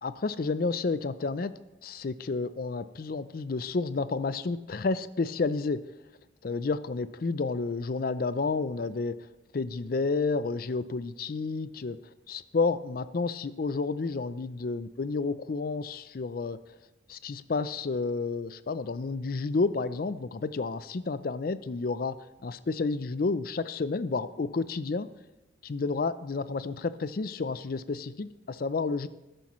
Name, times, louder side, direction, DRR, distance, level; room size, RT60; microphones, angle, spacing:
voice 1, 0.0-1.5 1.8-5.8 6.4-9.2 9.5-12.0 12.3-16.6 17.1-22.2 22.4-25.1 25.6-29.1, left 4 dB, 50° left, 14 dB, 0.5 m, -30 dB
13.5 x 11.0 x 3.1 m, 0.98 s
head